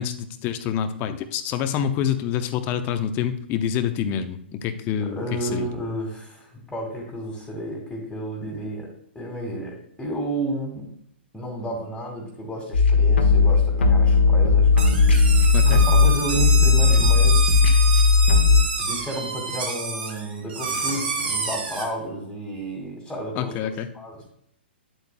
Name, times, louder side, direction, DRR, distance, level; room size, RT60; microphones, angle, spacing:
voice 1, 0.0-5.7 15.5-15.8 23.4-23.9, left 9 dB, 30° left, 8 dB, 0.7 m, -27 dB
voice 2, 5.0-10.9 11.3-14.7 15.6-17.6 18.8-23.7 23.9-24.3, right 1 dB, 5° left, -1 dB, 2.0 m, -32 dB
sound 1, 12.7-18.6, left 4 dB, 80° left, 1.4 m, -16 dB
sound 2, 14.8-21.9, right 4 dB, 65° right, 2.9 m, -28 dB
9.3 x 8.3 x 2.2 m, 0.69 s
hypercardioid pair, 120°, 6 cm